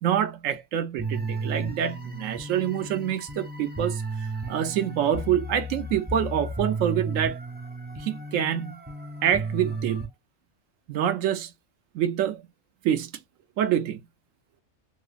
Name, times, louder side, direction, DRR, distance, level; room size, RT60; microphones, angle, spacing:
voice 1, 0.0-7.4 8.0-8.8 9.2-10.0 10.9-11.5 11.9-12.4 12.8-13.1 13.6-14.0, right 10 dB, 80° right, 1.0 m, -26 dB
sound 1, 1.0-10.1, right 2 dB, 15° right, 0.4 m, -33 dB
3.1 x 2.9 x 2.4 m
omnidirectional pair, 1.3 m